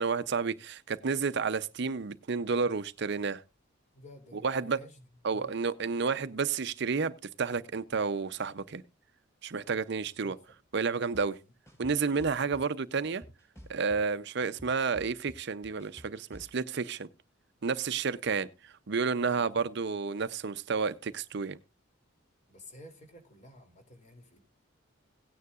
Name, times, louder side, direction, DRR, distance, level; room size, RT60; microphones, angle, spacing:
voice 1, 0.0-3.4 4.4-4.8 5.2-8.8 9.4-10.4 10.7-11.4 11.8-13.2 13.7-17.1 17.6-21.6, right 5 dB, 55° right, 0.6 m, -31 dB
voice 2, 3.9-5.0 5.3-5.6 10.2-10.6 11.4-11.5 12.2-12.5 19.2-19.7 22.5-24.4, left 1 dB, 35° left, 3.0 m, -53 dB
sound 1, 11.1-11.2 11.7-12.6 13.0-14.1 14.4-16.5, equal, 15° left, 6.1 m, -50 dB
17.0 x 9.5 x 2.4 m
head